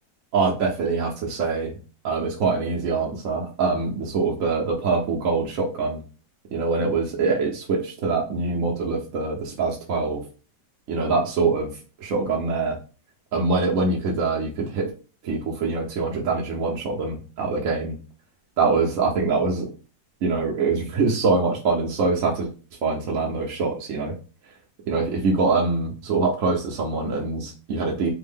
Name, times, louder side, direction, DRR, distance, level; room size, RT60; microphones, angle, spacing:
voice 1, 0.3-1.7 2.0-6.0 6.5-10.2 10.9-12.8 13.3-14.9 15.2-18.0 18.6-19.7 20.2-22.5 22.8-24.1 24.9-28.1, right 4 dB, 65° right, -1 dB, 0.8 m, -24 dB
3.5 x 2.1 x 3.4 m, 0.36 s
omnidirectional pair, 2.0 m